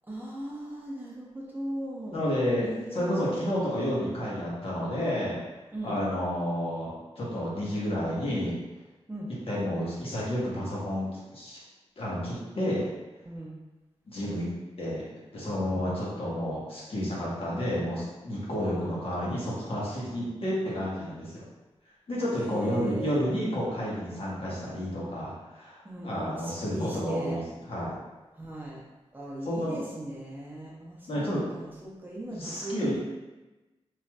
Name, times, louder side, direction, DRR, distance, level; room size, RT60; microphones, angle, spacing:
voice 1, 0.1-2.3 2.6-3.5 5.7-6.0 9.1-9.3 13.2-13.6 15.7-15.9 22.4-23.3 25.8-27.4 28.4-28.8 29.1-33.0, right 1 dB, 15° right, -5 dB, 0.6 m, -38 dB
voice 2, 2.1-5.4 5.8-8.6 9.5-11.6 12.0-12.9 14.1-14.5 14.8-15.0 15.3-21.3 22.1-27.4 27.7-27.9 29.4-29.8 31.1-31.5 32.3-33.0, equal, 60° left, -7 dB, 1.0 m, -30 dB
3.1 x 2.6 x 2.2 m, 1.1 s
wide cardioid pair, 85°, 11 cm